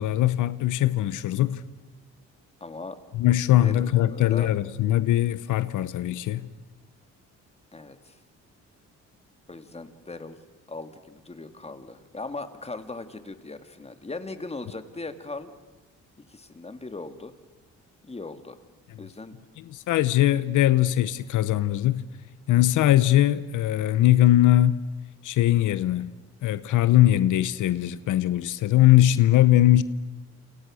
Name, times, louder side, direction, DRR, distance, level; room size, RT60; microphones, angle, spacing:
voice 1, 0.0-1.6 3.1-6.5 19.6-22.0 22.5-24.8 25.2-26.1 26.4-29.8, left 14 dB, 85° left, 1.0 m, -21 dB
voice 2, 2.6-3.0 3.6-4.5 7.7-8.2 9.5-10.4 10.7-15.5 16.3-17.3 18.0-18.6 19.0-19.4, left 3 dB, 20° left, 2.3 m, -39 dB
28.5 x 28.0 x 6.5 m
cardioid pair, 90°, 30 cm